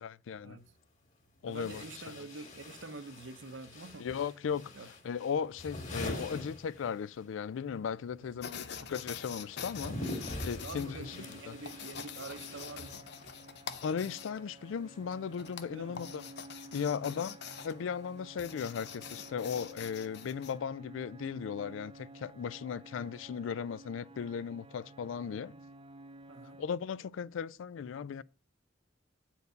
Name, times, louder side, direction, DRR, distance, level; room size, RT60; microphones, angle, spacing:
voice 1, 0.0-0.6 1.4-1.8 4.0-4.7 5.0-11.2 11.5-11.6 13.8-16.3 16.7-25.5 26.6-28.2, left 7 dB, 85° left, 0.4 m, -37 dB
sound 1, 0.6-0.7 1.5-7.3 7.6-13.4, left 1 dB, 40° left, 2.0 m, -44 dB
voice 2, 1.5-4.1 4.7-4.9 8.2-8.9 10.2-13.1 15.7-16.0 17.0-17.4 22.7-22.8 25.4-25.6 26.3-26.6, right 3 dB, 75° right, 0.8 m, -47 dB
sound 2, 8.4-20.6, left 7 dB, 60° left, 0.7 m, -46 dB
sound 3, 9.8-26.7, right 2 dB, 30° right, 0.4 m, -53 dB
8.1 x 4.6 x 5.1 m
head